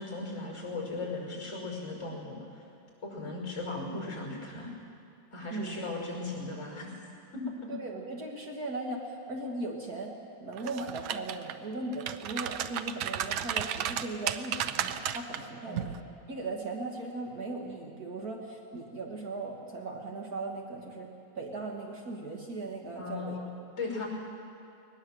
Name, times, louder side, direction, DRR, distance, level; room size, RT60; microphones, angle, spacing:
voice 1, 0.0-2.6 3.0-4.7 5.3-6.9 7.3-7.7 15.7-15.9 23.0-24.1, left 3 dB, 35° left, 0 dB, 5.9 m, -37 dB
voice 2, 7.7-15.9 16.3-23.4, right 2 dB, 50° right, 0 dB, 2.1 m, -38 dB
sound 1, 10.6-11.5 11.9-15.4 15.8-16.0, right 10 dB, 90° right, 1.6 m, -33 dB
21.5 x 20.0 x 7.7 m, 2.5 s
omnidirectional pair, 2.2 m